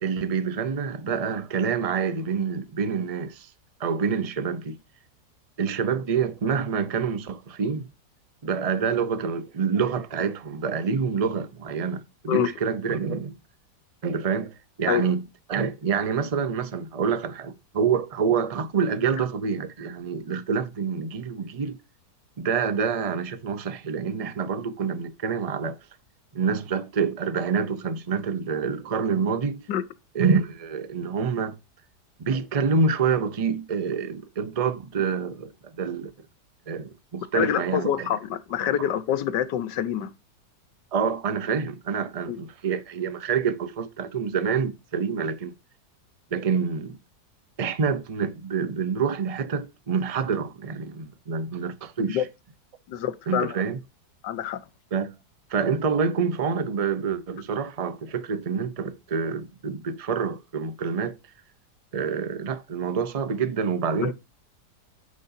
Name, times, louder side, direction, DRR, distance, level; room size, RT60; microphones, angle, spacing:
voice 1, 0.0-3.5 3.8-4.8 5.6-7.9 8.4-13.3 14.0-15.2 15.5-21.8 22.4-25.8 26.3-29.7 30.1-31.6 32.2-36.1 36.7-38.1 38.8-38.9 40.9-45.5 46.3-47.0 47.6-52.2 53.3-53.8 54.9-55.1 55.5-61.2 61.9-64.1, right 6 dB, 40° right, 0.5 m, -27 dB
voice 2, 37.3-40.1 42.3-42.4 52.0-52.3 52.9-53.6 54.2-54.6 64.0-64.1, left 10 dB, 90° left, 1.5 m, -26 dB
9.7 x 6.8 x 2.7 m
omnidirectional pair, 1.8 m